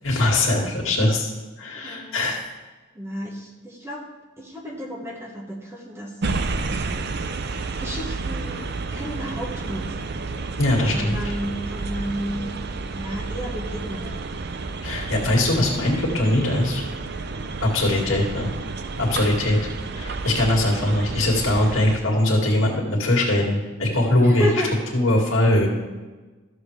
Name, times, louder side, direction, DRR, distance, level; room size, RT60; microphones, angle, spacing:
voice 1, 0.0-1.3 1.6-2.4 10.6-11.2 14.8-16.8 17.6-18.5 19.0-19.6 20.0-24.5 24.9-25.7, left 1 dB, 80° left, -2 dB, 2.2 m, -21 dB
voice 2, 1.7-2.3 2.9-4.0 4.4-6.7 7.8-10.3 10.9-12.5 12.8-14.4 17.9-18.3 19.3-19.6 24.2-24.7, equal, 15° right, -1 dB, 1.3 m, -32 dB
sound 1, 6.2-22.0, right 3 dB, 55° right, 0.5 m, -31 dB
13.0 x 7.1 x 3.3 m, 1.3 s
head